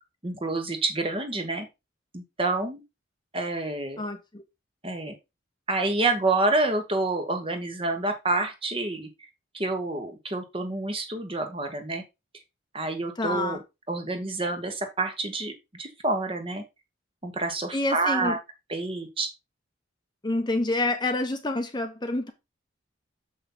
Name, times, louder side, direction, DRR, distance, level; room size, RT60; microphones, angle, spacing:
voice 1, 0.2-1.7 2.1-2.8 3.3-4.0 4.8-5.1 5.7-9.1 9.5-12.0 12.7-13.6 13.9-16.6 17.2-18.4 18.7-19.3, right 2 dB, 25° right, 1.3 m, -28 dB
voice 2, 4.0-4.4 13.2-13.6 17.7-18.4 20.2-22.3, left 2 dB, 20° left, 0.8 m, -27 dB
7.0 x 5.4 x 3.9 m
head